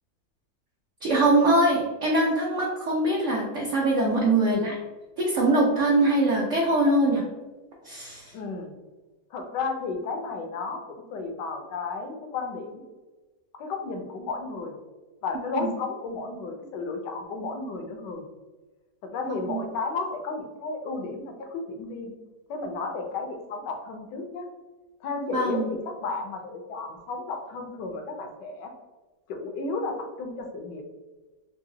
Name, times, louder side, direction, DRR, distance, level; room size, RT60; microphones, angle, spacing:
voice 1, 1.0-4.7 5.2-7.2 7.8-8.3 15.5-15.7 19.3-19.6 25.3-25.7, right 2 dB, 65° right, -3 dB, 0.7 m, -23 dB
voice 2, 8.3-8.7 9.3-12.8 13.5-14.7 15.2-18.2 19.0-22.1 22.5-24.5 25.0-28.7 29.3-30.8, left 3 dB, 80° left, 4 dB, 1.3 m, -33 dB
3.8 x 2.8 x 2.6 m, 1.2 s
omnidirectional pair, 1.9 m